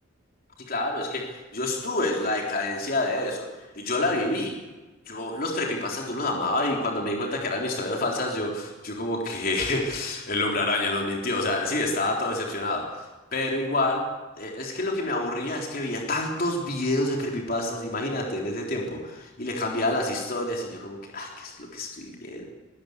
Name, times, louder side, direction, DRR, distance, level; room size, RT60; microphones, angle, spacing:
voice 1, 0.7-4.5 5.1-13.1 13.3-14.0 14.4-22.4, left 2 dB, 45° left, 0 dB, 3.9 m, -28 dB
21.0 x 19.0 x 8.2 m, 1.2 s
head